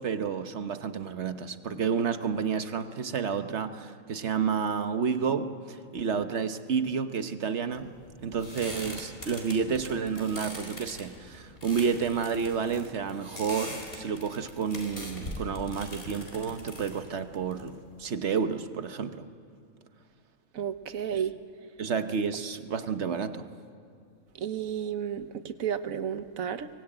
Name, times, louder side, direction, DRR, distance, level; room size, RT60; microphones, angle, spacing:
voice 1, 0.0-19.3 21.1-21.2 21.8-23.5, right 6 dB, 60° right, 9 dB, 1.3 m, -30 dB
sound 1, 7.7-18.1, left 1 dB, 45° left, 4.2 m, -42 dB
voice 2, 20.5-21.3 24.4-26.7, right 8 dB, 85° right, 11 dB, 1.4 m, -32 dB
24.0 x 21.5 x 9.0 m, 2.3 s
omnidirectional pair, 1.4 m